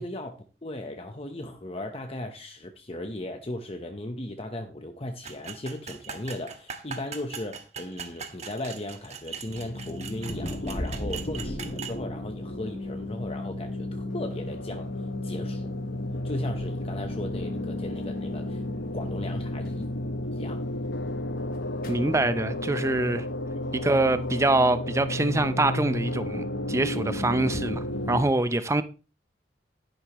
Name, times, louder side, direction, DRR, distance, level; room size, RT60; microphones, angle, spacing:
voice 1, 0.0-14.9 15.2-15.7 16.2-18.6 18.9-19.9 20.3-20.6 23.5-23.6, left 1 dB, 35° left, 1.0 m, -37 dB
sound 1, 5.2-12.0, right 6 dB, 40° right, 1.5 m, -40 dB
sound 2, 9.5-28.2, left 1 dB, 85° left, 1.2 m, -33 dB
sound 3, 10.2-15.8 16.2-18.1 18.4-18.5 19.7-19.8 21.5-22.1, left 1 dB, 55° left, 2.1 m, -39 dB
voice 2, 21.9-23.2 23.7-28.8, right 2 dB, 15° right, 0.6 m, -25 dB
12.0 x 11.0 x 3.1 m
head